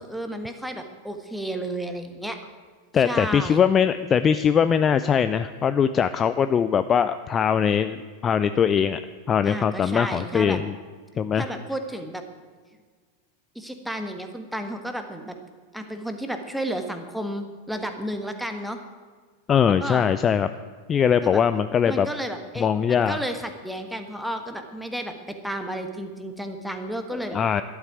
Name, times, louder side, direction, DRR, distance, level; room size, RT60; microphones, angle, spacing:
voice 1, 0.0-2.4 3.0-3.6 9.4-10.6 11.4-12.2 13.5-15.4 15.7-18.8 19.8-20.1 21.2-21.4 21.9-27.4, right 1 dB, ahead, 6 dB, 1.4 m, -32 dB
voice 2, 2.9-9.0 9.3-10.7 11.2-11.5 19.5-20.5 20.9-22.1 22.6-23.2 27.3-27.6, left 7 dB, 25° left, 12 dB, 0.4 m, -21 dB
12.5 x 8.1 x 9.2 m, 1.5 s
figure-of-eight pair, 90°, 0 cm